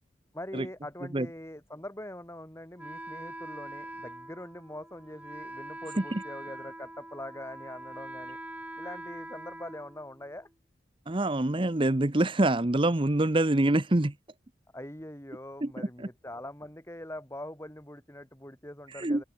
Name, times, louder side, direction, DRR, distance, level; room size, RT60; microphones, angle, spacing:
voice 1, 0.3-8.4 8.8-10.5 14.7-19.2, left 1 dB, 15° left, 4.8 m, -43 dB
Wind instrument woodwind instrument, 2.8-10.5, right 1 dB, 10° right, 6.3 m, -43 dB
voice 2, 11.1-14.1 15.6-16.1 18.9-19.2, right 1 dB, 25° right, 0.9 m, -26 dB
open air
head